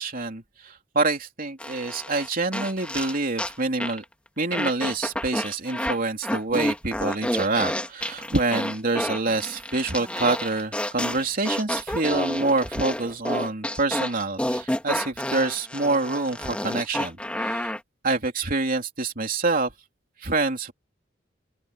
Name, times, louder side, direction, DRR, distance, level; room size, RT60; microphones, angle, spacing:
voice 1, 0.0-4.0 4.4-17.7 18.0-19.7 20.2-20.7, right 3 dB, 50° right, 3.2 m, -26 dB
sound 1, 1.6-3.5 3.8-4.0 4.5-6.0 6.2-17.8, left 1 dB, 5° left, 1.8 m, -29 dB
open air
head